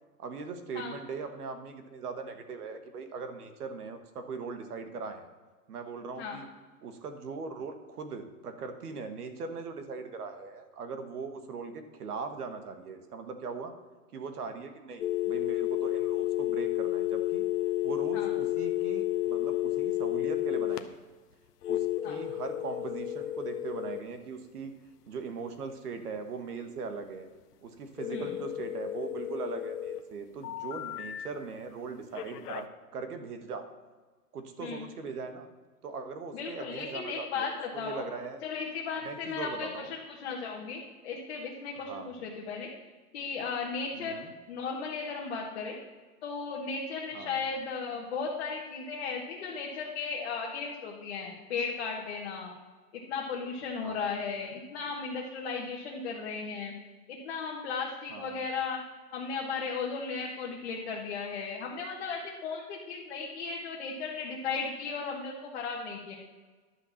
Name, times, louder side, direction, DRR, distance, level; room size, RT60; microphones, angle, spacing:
voice 1, 0.2-5.3 5.7-6.5 6.8-13.7 14.1-17.4 17.8-21.0 21.7-24.7 25.1-27.3 27.6-32.7 32.9-33.7 34.3-35.5 35.8-38.4 39.0-39.9 41.9-42.1 44.0-44.3 47.1-47.4 53.8-54.2 58.1-58.4, right 4 dB, 70° right, 8 dB, 1.7 m, -40 dB
sound 1, 15.0-20.8 21.6-24.0 28.0-30.0 30.4-31.3 32.1-32.6, left 14 dB, 80° left, 1.0 m, -31 dB
voice 2, 36.3-38.1 38.4-42.7 43.1-44.2 44.5-45.8 46.2-52.5 52.9-56.7 57.1-58.8 59.1-66.1, left 5 dB, 40° left, -2 dB, 1.4 m, -36 dB
11.0 x 6.0 x 7.1 m, 1.3 s
hypercardioid pair, 175°, 47 cm